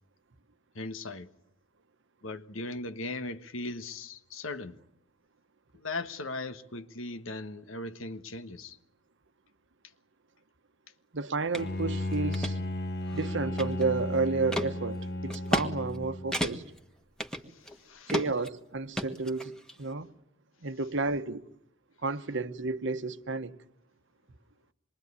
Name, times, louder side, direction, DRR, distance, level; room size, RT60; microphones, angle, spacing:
voice 1, 0.7-1.3 2.2-4.7 5.7-8.8 17.5-18.1, left 2 dB, 75° left, 1.3 m, -38 dB
voice 2, 11.1-12.6 13.1-16.6 18.1-19.5 19.8-20.1 20.6-21.5 22.0-23.6, right 3 dB, 60° right, 1.1 m, -31 dB
sound 1, 11.5-11.7 12.1-12.5 13.1-14.0 14.5-14.7 15.3-15.7 15.9-16.0 16.3-16.8 17.2-17.8 18.1-18.5 19.0-19.8, equal, 5° left, 1.6 m, -32 dB
Bowed string instrument, 11.6-16.5, left 1 dB, 55° left, 1.9 m, -34 dB
26.5 x 22.5 x 9.7 m
head